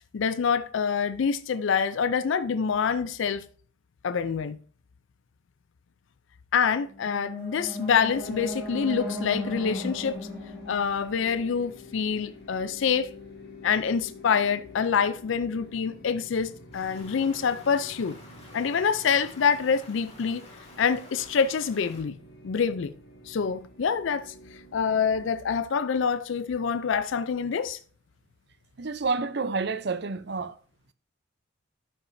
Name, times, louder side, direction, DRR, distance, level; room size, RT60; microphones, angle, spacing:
voice 1, 0.1-3.5 4.0-4.6 6.5-10.2 10.7-13.1 13.6-18.2 18.5-20.4 20.8-22.2 22.4-22.9 23.3-24.3 24.7-27.8, left 6 dB, 70° left, 0.4 m, -26 dB
sound 1, 6.9-12.0, left 1 dB, ahead, 2.7 m, -36 dB
sound 2, 8.1-25.3, left 3 dB, 55° left, 1.7 m, -48 dB
Stream, 16.7-22.0, left 2 dB, 30° left, 2.1 m, -50 dB
voice 2, 28.8-30.5, right 4 dB, 55° right, 0.5 m, -29 dB
11.0 x 5.9 x 2.6 m
head